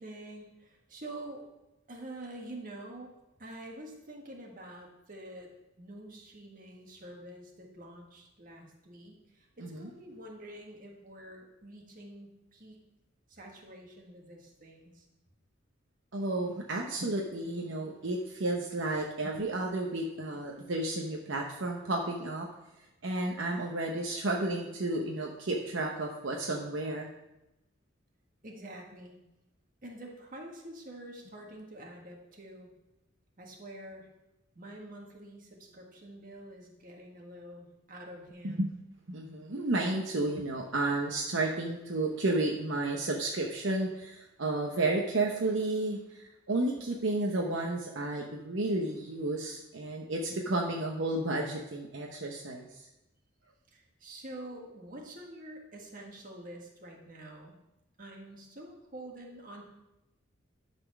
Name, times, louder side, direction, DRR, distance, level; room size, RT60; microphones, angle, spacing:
voice 1, 0.0-1.4 1.9-3.1 3.4-5.5 5.8-12.8 13.3-15.1 28.4-29.2 29.8-32.7 33.4-34.1 34.5-38.6 53.7-57.6 58.0-59.6, right 1 dB, 40° right, 0 dB, 1.6 m, -47 dB
voice 2, 16.1-22.5 23.0-27.1 38.4-38.7 39.1-52.7, right 2 dB, 65° right, 1 dB, 0.9 m, -32 dB
11.0 x 4.3 x 5.9 m, 0.94 s
head